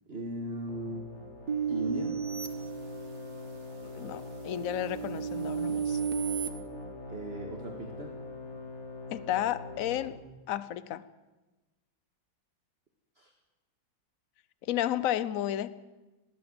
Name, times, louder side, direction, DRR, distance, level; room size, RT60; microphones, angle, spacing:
voice 1, 0.1-1.1 1.7-2.3 7.1-8.2 13.2-13.3, right 1 dB, 35° right, 3 dB, 2.0 m, -37 dB
sound 1, 0.7-10.1, left 2 dB, 35° left, 2.6 m, -43 dB
sound 2, 1.5-3.4 4.0-6.5, right 7 dB, 55° right, 2.0 m, -34 dB
voice 2, 3.8-6.0 9.1-10.2 10.5-11.0 14.6-15.7, left 12 dB, 55° left, 16 dB, 1.0 m, -32 dB
21.0 x 16.5 x 8.0 m, 1.1 s
omnidirectional pair, 2.0 m